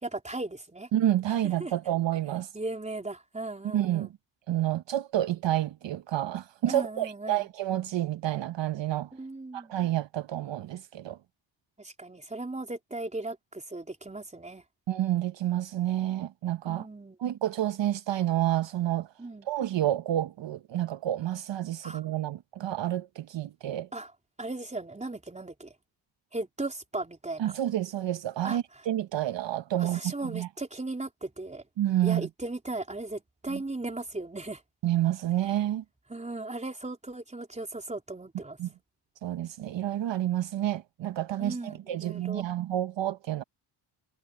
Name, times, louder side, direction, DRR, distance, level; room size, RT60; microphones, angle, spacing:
voice 1, 0.0-0.9 1.3-1.7 2.5-4.1 6.7-7.5 9.1-9.7 11.8-14.6 16.6-17.2 19.2-19.5 21.8-22.0 23.9-24.1 24.4-25.7 26.3-27.5 28.4-28.6 29.8-31.6 32.0-34.6 36.1-38.6 41.4-42.4, right 2 dB, 15° right, 3.8 m, -37 dB
voice 2, 0.9-2.5 3.7-4.1 4.5-9.1 9.5-11.2 14.9-16.9 17.2-19.1 19.5-23.9 27.4-30.5 31.8-32.3 33.5-33.6 34.8-35.8 38.6-38.7 39.2-43.4, right 12 dB, 65° right, 0.9 m, -29 dB
cardioid pair, 105°, 47 cm